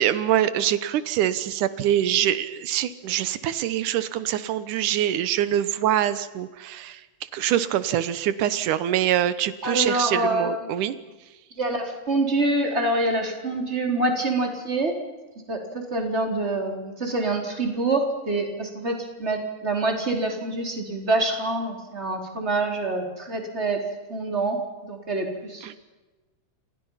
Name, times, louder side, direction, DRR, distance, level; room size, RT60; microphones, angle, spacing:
voice 1, 0.0-7.1 7.3-11.0 25.6-25.7, right 11 dB, 90° right, 13 dB, 2.6 m, -24 dB
voice 2, 9.6-10.7 11.6-15.0 15.5-23.8 24.1-25.8, right 2 dB, 20° right, 2 dB, 4.3 m, -26 dB
28.5 x 27.5 x 5.7 m, 1.2 s
omnidirectional pair, 3.5 m